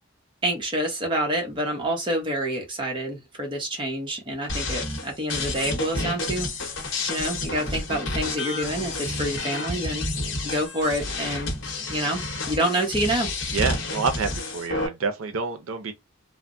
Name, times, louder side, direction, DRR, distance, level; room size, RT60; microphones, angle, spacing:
voice 1, 0.4-6.8 7.1-10.1 10.4-11.5 11.9-13.3, right 1 dB, 25° right, 0.9 m, -27 dB
sound 1, 4.5-14.9, left 2 dB, 65° left, 0.9 m, -30 dB
voice 2, 13.5-15.9, right 5 dB, 85° right, 0.5 m, -28 dB
3.3 x 2.1 x 2.5 m
head